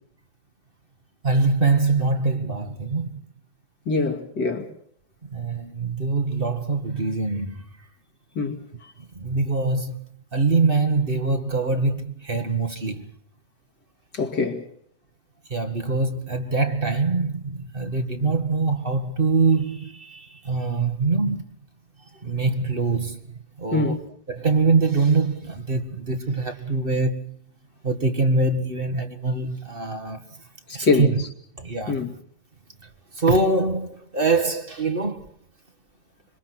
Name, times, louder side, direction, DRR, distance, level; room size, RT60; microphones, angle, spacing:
voice 1, 1.2-3.2 5.3-7.7 9.1-10.0 10.3-13.1 15.5-21.5 22.2-23.2 23.6-23.9 24.3-27.3 27.8-30.2 30.7-31.2 31.6-32.0 33.1-35.3, right 3 dB, 35° right, 1.9 m, -23 dB
voice 2, 3.9-4.7 8.3-8.9 14.1-14.7 23.7-24.0 30.7-31.1 31.9-32.1, left 4 dB, 85° left, 3.3 m, -24 dB
26.5 x 23.5 x 6.2 m
omnidirectional pair, 1.8 m